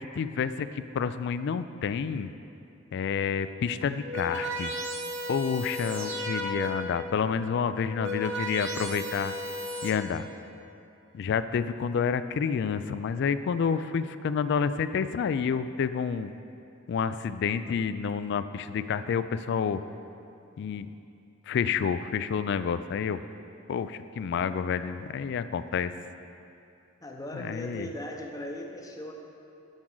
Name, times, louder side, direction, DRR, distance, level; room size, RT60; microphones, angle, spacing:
voice 1, 0.0-2.3 2.9-4.7 5.3-9.3 9.8-10.3 11.1-16.3 16.9-19.8 20.6-20.9 21.5-23.2 23.7-25.9 27.3-27.9, left 6 dB, 60° left, 13 dB, 0.3 m, -29 dB
sound 1, 3.8-7.0 7.7-9.9, equal, 60° right, 0.9 m, -34 dB
voice 2, 27.0-29.1, left 1 dB, 20° left, 2 dB, 0.7 m, -38 dB
10.5 x 6.1 x 3.8 m, 2.6 s
head